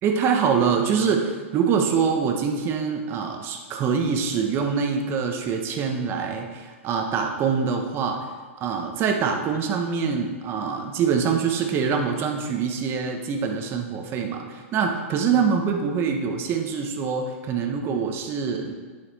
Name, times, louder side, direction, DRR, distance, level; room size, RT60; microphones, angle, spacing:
voice 1, 0.0-8.3 8.6-18.7, right 6 dB, 30° right, 3 dB, 1.3 m, -24 dB
11.0 x 5.8 x 4.2 m, 1.5 s
hypercardioid pair, 120°, 8 cm